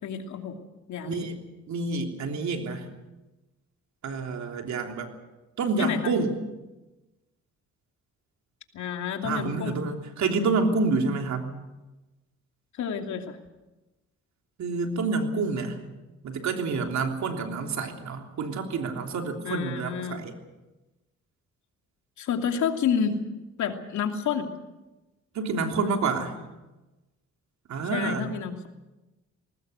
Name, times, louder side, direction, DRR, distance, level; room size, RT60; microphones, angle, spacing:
voice 1, 0.0-0.6 0.9-1.2 5.8-6.1 8.7-9.8 12.8-13.4 19.4-20.2 22.2-23.2 23.6-24.5 27.9-28.7, left 7 dB, 70° left, 4 dB, 2.8 m, -29 dB
voice 2, 1.0-1.4 1.7-2.9 4.0-5.1 5.6-6.3 9.2-11.5 14.6-15.8 16.2-20.3 25.3-26.3 27.7-28.2, right 4 dB, 65° right, 4 dB, 3.4 m, -28 dB
20.5 x 19.0 x 8.1 m, 1.1 s
cardioid pair, 90°, 30 cm